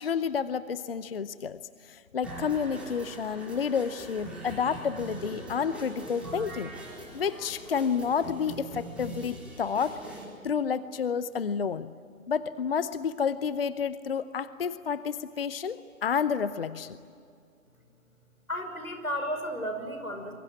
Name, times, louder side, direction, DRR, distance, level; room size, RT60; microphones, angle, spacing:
voice 1, 0.0-6.7 7.1-10.0 10.4-11.9 12.3-17.0, left 6 dB, 45° left, 15 dB, 0.7 m, -30 dB
sound 1, 2.2-10.2, right 2 dB, 5° right, 5.0 m, -42 dB
voice 2, 18.5-20.3, equal, 90° left, 5 dB, 5.8 m, -33 dB
27.0 x 22.5 x 9.0 m, 2.4 s
figure-of-eight pair, 135°, 42 cm